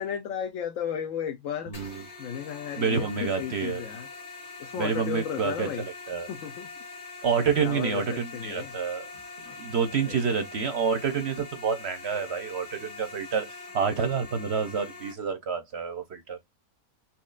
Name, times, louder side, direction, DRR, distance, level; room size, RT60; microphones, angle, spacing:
voice 1, 0.0-1.7 2.2-4.1 4.6-5.8 6.3-6.7 7.6-8.7 10.0-10.2, left 8 dB, 65° left, 1.0 m, -34 dB
sound 1, 1.7-15.1, left 4 dB, 50° left, 1.6 m, -43 dB
voice 2, 1.7-2.0 2.8-3.8 4.8-5.7 6.1-6.3 7.2-9.1 9.6-16.4, right 6 dB, 60° right, 0.7 m, -28 dB
4.2 x 2.9 x 2.4 m
omnidirectional pair, 1.6 m